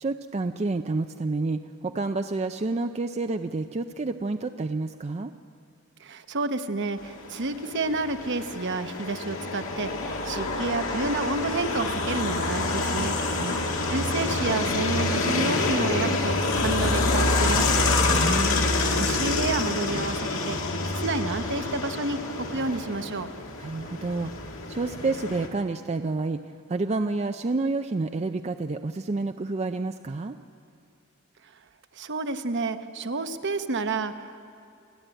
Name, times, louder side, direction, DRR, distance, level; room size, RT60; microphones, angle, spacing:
voice 1, 0.0-5.3 13.3-13.6 18.2-18.7 23.6-30.4, right 3 dB, 30° right, 7 dB, 0.4 m, -29 dB
voice 2, 6.0-13.1 13.9-17.9 18.9-20.6 21.0-22.2 22.5-23.3 31.9-34.5, right 3 dB, 55° right, 9 dB, 0.9 m, -30 dB
sound 1, 7.1-25.5, left 2 dB, 65° left, 2.1 m, -27 dB
29.5 x 10.5 x 8.9 m, 2.5 s
head